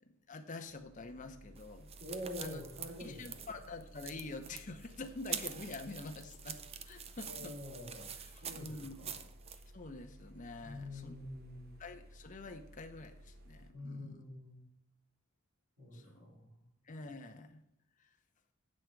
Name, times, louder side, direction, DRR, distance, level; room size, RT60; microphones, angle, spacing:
voice 1, 0.0-1.9 2.4-2.6 3.0-6.6 6.9-7.6 8.1-9.1 9.7-11.3 11.8-14.2 15.9-16.3 16.9-17.6, left 3 dB, 40° left, 6 dB, 0.8 m, -47 dB
sound 1, 0.7-13.7, equal, 50° right, 0.8 m, -57 dB
sound 2, 1.6-9.6, right 8 dB, 30° right, 0.5 m, -46 dB
voice 2, 2.0-3.4 7.3-8.1 8.4-9.2 10.6-11.8 13.7-14.6 15.8-16.6, left 1 dB, 75° right, -4 dB, 3.9 m, -46 dB
8.6 x 6.5 x 4.6 m, 0.71 s
head